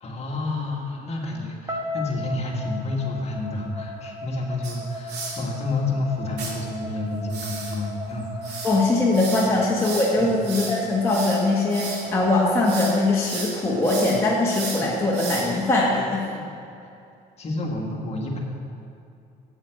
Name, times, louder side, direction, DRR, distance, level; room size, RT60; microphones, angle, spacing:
voice 1, 0.0-8.7 10.2-10.4 16.3-16.6 17.4-18.4, left 2 dB, 40° left, 0 dB, 1.7 m, -29 dB
sound 1, 1.7-13.8, left 1 dB, 20° right, 1.6 m, -37 dB
sound 2, 4.6-5.4 6.4-6.5 7.3-12.1 12.4-13.0 13.2-15.7, right 4 dB, 75° right, 2.4 m, -34 dB
voice 2, 8.6-16.3, left 2 dB, 15° left, -5 dB, 1.5 m, -21 dB
9.6 x 8.1 x 6.4 m, 2.6 s
cardioid pair, 110°, 17 cm